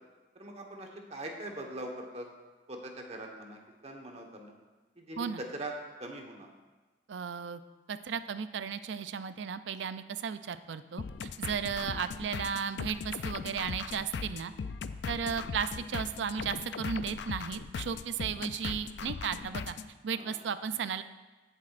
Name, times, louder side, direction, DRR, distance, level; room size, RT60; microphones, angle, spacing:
voice 1, 0.3-2.3 2.7-4.5 5.0-5.7 6.0-6.5 11.8-12.0 15.2-15.5 20.1-20.4, right 1 dB, 35° right, 2 dB, 1.2 m, -42 dB
voice 2, 7.1-7.6 7.9-14.5 15.1-19.7 20.0-21.0, right 7 dB, 75° right, 12 dB, 0.4 m, -35 dB
sound 1, 11.0-19.9, left 5 dB, 65° left, 0.4 m, -39 dB
16.0 x 7.3 x 2.5 m, 1.2 s
head